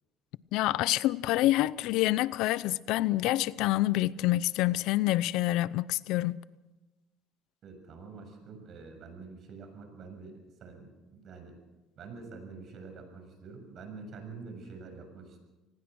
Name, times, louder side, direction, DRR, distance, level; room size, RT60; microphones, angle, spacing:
voice 1, 0.5-6.4, left 16 dB, 75° left, 0.6 m, -27 dB
voice 2, 7.6-11.5 11.9-15.4, right 4 dB, 50° right, 6.9 m, -46 dB
25.5 x 19.5 x 6.2 m
supercardioid pair, 95°, 0 cm